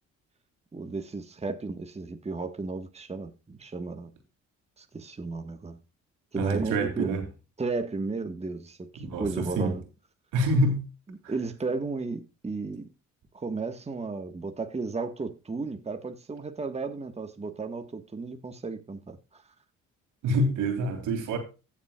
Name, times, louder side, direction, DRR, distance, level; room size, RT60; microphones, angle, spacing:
voice 1, 0.7-4.1 4.8-5.8 6.3-7.1 7.6-9.8 11.1-12.9 13.3-19.4, right 3 dB, 20° right, 1.4 m, -34 dB
voice 2, 6.4-7.2 9.0-9.7 10.3-10.8 20.2-21.4, right 1 dB, 90° right, 3.1 m, -26 dB
16.5 x 7.3 x 2.3 m
cardioid pair, 90°, 30 cm